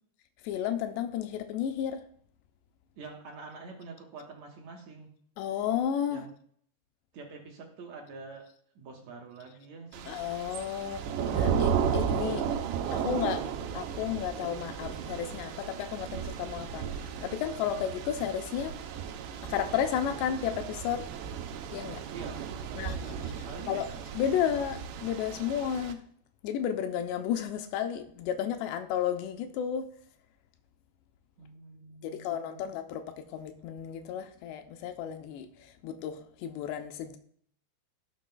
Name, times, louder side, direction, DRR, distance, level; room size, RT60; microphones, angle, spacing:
voice 1, 0.4-2.0 5.4-6.2 10.1-12.5 12.9-13.5 13.7-18.8 19.5-21.0 21.7-22.0 22.8-23.0 23.7-23.9 24.1-26.0 26.4-29.9 32.0-37.2, left 9 dB, 90° left, 6 dB, 3.0 m, -32 dB
voice 2, 3.0-5.1 6.1-6.3 7.1-8.5 8.8-10.1 22.1-24.0 31.4-32.7, right 4 dB, 60° right, 1 dB, 1.9 m, -46 dB
Thunder / Rain, 9.9-25.9, right 7 dB, 85° right, 3.0 m, -34 dB
17.5 x 7.3 x 2.3 m, 0.62 s
omnidirectional pair, 4.8 m